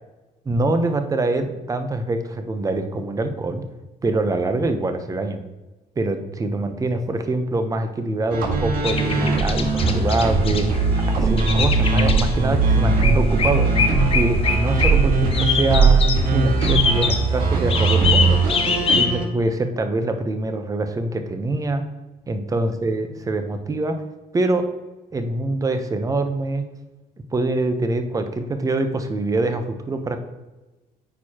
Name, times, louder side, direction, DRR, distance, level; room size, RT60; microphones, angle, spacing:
voice 1, 0.5-3.6 4.0-5.4 6.0-10.8 11.2-13.7 14.1-16.0 16.3-18.4 18.9-21.8 22.3-24.0 24.3-24.7 25.1-26.6 27.3-30.2, right 2 dB, 20° right, 7 dB, 0.8 m, -24 dB
sound 1, 8.3-19.2, right 4 dB, 70° right, 1.7 m, -19 dB
sound 2, 8.8-19.1, left 5 dB, 40° left, 0.8 m, -25 dB
9.2 x 4.6 x 2.9 m, 1.1 s
cardioid pair, 110°, 15 cm